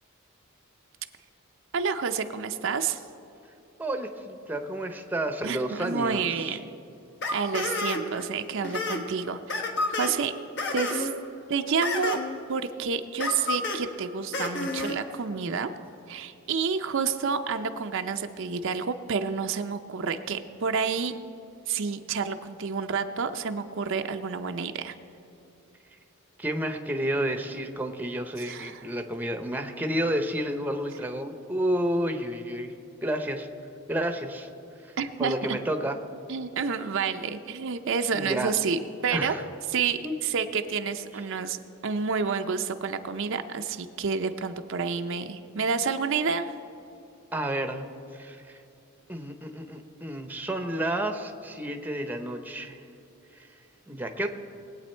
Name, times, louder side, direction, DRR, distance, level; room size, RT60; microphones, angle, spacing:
voice 1, 1.7-3.0 5.4-6.6 7.3-9.4 9.9-10.3 10.7-11.1 11.5-12.2 12.5-15.7 16.1-21.2 21.7-25.0 28.4-28.9 35.0-35.6 36.3-39.4 39.7-46.5, right 5 dB, 60° right, 7 dB, 0.5 m, -29 dB
voice 2, 3.8-6.6 26.4-32.7 33.0-33.5 33.9-34.5 34.8-34.9 35.2-36.0 38.1-38.5 39.1-39.4 40.0-40.2 47.3-47.8 48.1-48.6 49.1-52.8 53.4-53.5 53.9-54.3, right 1 dB, 10° right, 6 dB, 0.8 m, -30 dB
sound 1, 7.2-8.2 8.5-9.0 9.5-10.1 10.6-11.1 11.8-12.4 13.2-13.8 14.3-15.0, left 2 dB, 55° left, 1.4 m, -30 dB
21.0 x 8.4 x 4.4 m, 2.8 s
head